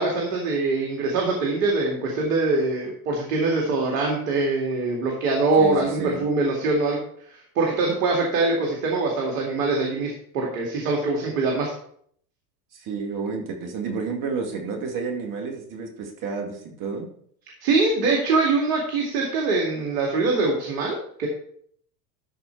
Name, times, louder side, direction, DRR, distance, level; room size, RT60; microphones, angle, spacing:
voice 1, 0.0-7.0 7.3-11.7 17.6-21.3, right 3 dB, 70° right, 0 dB, 2.4 m, -23 dB
voice 2, 5.6-6.3 12.7-17.1, right 4 dB, 40° right, 2 dB, 2.4 m, -30 dB
12.5 x 4.4 x 4.6 m, 0.64 s
hypercardioid pair, 100°, 47 cm